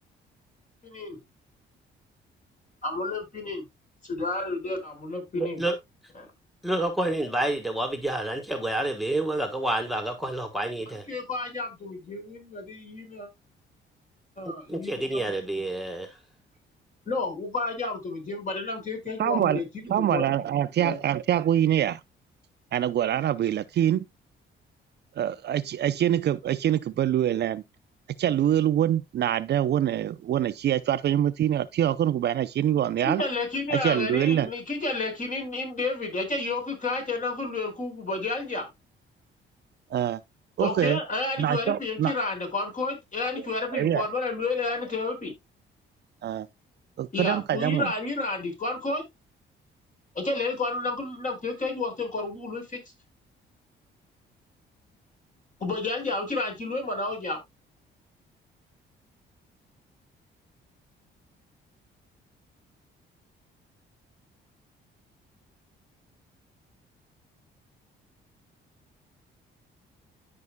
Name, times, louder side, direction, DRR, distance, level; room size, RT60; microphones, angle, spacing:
voice 1, 0.8-1.2 2.8-3.6 4.0-5.6 6.1-6.3 11.1-13.3 14.4-15.3 17.1-19.6 20.0-20.3 20.8-21.0 33.0-38.7 40.6-45.3 47.1-49.1 50.1-52.8 55.6-57.4, left 3 dB, 40° left, 4.3 m, -31 dB
voice 2, 5.4-5.7 6.6-11.0 14.4-16.1, right 1 dB, ahead, 1.4 m, -28 dB
voice 3, 19.2-19.6 19.9-22.0 22.7-24.1 25.2-27.6 28.2-33.2 33.7-34.5 39.9-40.2 40.6-41.0 41.4-42.1 43.7-44.1 46.2-46.5 47.0-47.9, right 11 dB, 60° right, 0.5 m, -25 dB
13.5 x 5.4 x 2.2 m
cardioid pair, 90°, 20 cm